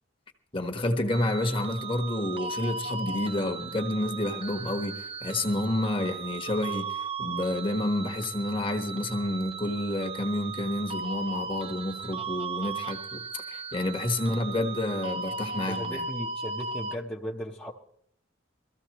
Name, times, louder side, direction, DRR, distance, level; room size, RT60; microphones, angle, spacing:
voice 1, 0.5-16.0, left 1 dB, 25° left, 1.2 m, -29 dB
sound 1, 1.1-17.0, right 4 dB, 30° right, 0.5 m, -37 dB
voice 2, 14.3-14.7 15.5-17.7, equal, 5° left, 0.8 m, -37 dB
22.0 x 14.5 x 3.0 m
head